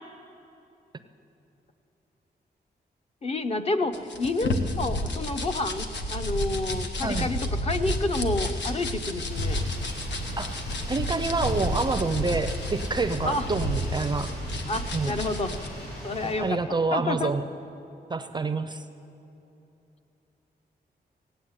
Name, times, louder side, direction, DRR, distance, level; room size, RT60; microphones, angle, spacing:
voice 1, 3.2-9.6 13.2-13.5 14.7-15.5 16.0-17.3, left 2 dB, 35° left, 8 dB, 0.6 m, -29 dB
sound 1, 3.9-15.7, left 1 dB, 90° left, 1.2 m, -31 dB
sound 2, 9.3-16.3, equal, 70° left, 4.6 m, -41 dB
voice 2, 10.9-14.3 14.9-15.1 16.2-17.4 18.1-18.8, right 3 dB, 25° right, 10 dB, 0.4 m, -27 dB
17.0 x 8.0 x 9.4 m, 2.8 s
wide cardioid pair, 170°, 18 cm